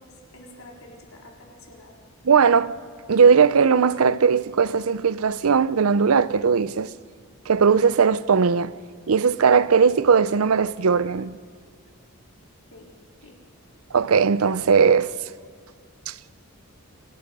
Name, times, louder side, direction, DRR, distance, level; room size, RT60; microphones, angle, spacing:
voice 1, 0.0-2.0 12.7-12.9 13.2-13.4, left 1 dB, 75° left, 4.3 m, -48 dB
voice 2, 2.2-2.7 3.1-6.9 7.5-8.7 9.1-11.3 13.9-15.1 16.1-16.2, right 6 dB, 80° right, 0.6 m, -18 dB
27.0 x 18.5 x 5.4 m
head